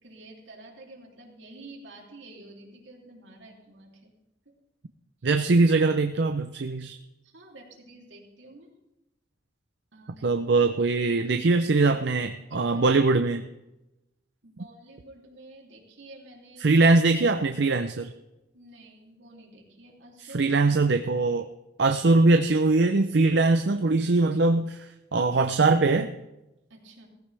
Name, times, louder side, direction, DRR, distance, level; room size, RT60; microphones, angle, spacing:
voice 1, 0.0-4.1 4.4-4.6 7.2-8.7 9.9-10.2 12.5-12.8 14.4-16.8 18.5-20.5 26.7-27.1, right 2 dB, 85° right, -1 dB, 3.1 m, -49 dB
voice 2, 5.2-7.0 10.2-13.4 16.6-18.1 20.2-21.5 21.8-26.1, right 3 dB, 65° right, 7 dB, 0.6 m, -22 dB
17.0 x 15.0 x 3.4 m, 0.96 s
head